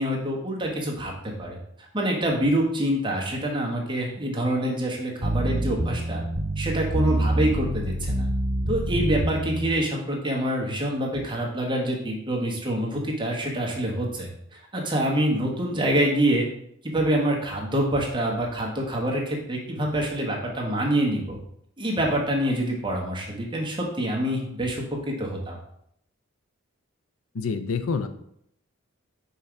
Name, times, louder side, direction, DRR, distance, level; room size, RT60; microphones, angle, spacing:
voice 1, 0.0-6.2 6.6-8.3 8.7-16.5 16.8-21.4 21.8-25.6, right 1 dB, 20° right, -1 dB, 1.1 m, -26 dB
sound 1, 5.2-9.8, right 1 dB, 60° right, 2.0 m, -26 dB
voice 2, 27.3-28.1, left 5 dB, 80° left, 10 dB, 0.5 m, -27 dB
5.6 x 3.8 x 4.5 m, 0.73 s
head